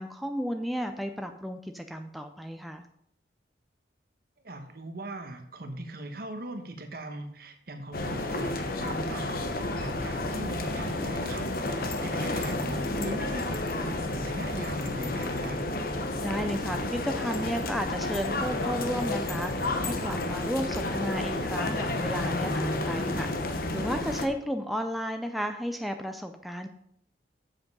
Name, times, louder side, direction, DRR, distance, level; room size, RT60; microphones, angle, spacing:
voice 1, 0.0-2.9 16.2-26.7, equal, ahead, 5 dB, 0.4 m, -33 dB
voice 2, 4.4-15.6, right 2 dB, 50° right, 7 dB, 1.1 m, -40 dB
sound 1, 7.9-24.3, left 2 dB, 50° left, 0.9 m, -31 dB
7.7 x 7.2 x 5.4 m, 0.73 s
head